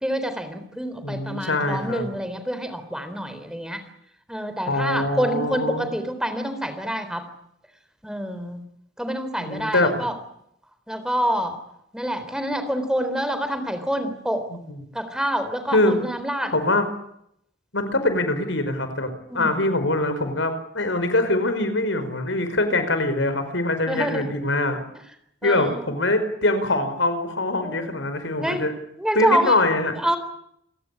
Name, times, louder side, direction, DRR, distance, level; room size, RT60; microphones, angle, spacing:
voice 1, 0.0-3.8 4.3-7.3 8.0-8.6 9.0-10.1 10.9-11.6 11.9-14.5 14.9-16.5 19.3-19.7 23.9-24.3 25.4-25.9 27.6-27.9 28.4-28.6 29.0-29.6 30.0-30.2, equal, 5° right, 9 dB, 3.8 m, -27 dB
voice 2, 1.0-2.1 4.6-5.9 9.4-9.9 14.5-14.8 15.7-16.0 16.5-16.9 17.7-19.1 19.3-24.8 25.4-28.7 29.2-29.9, left 2 dB, 90° left, 9 dB, 5.1 m, -23 dB
28.5 x 16.5 x 10.0 m, 0.75 s
head